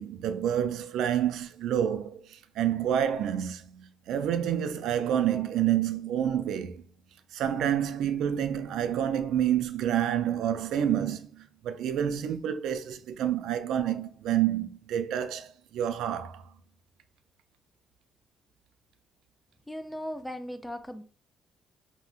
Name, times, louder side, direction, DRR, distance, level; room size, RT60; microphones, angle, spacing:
voice 1, 0.0-6.8 7.3-16.4, right 10 dB, 85° right, 0.3 m, -28 dB
voice 2, 19.7-21.0, equal, 5° left, 0.4 m, -37 dB
3.6 x 2.1 x 2.4 m
cardioid pair, 90°, 0 cm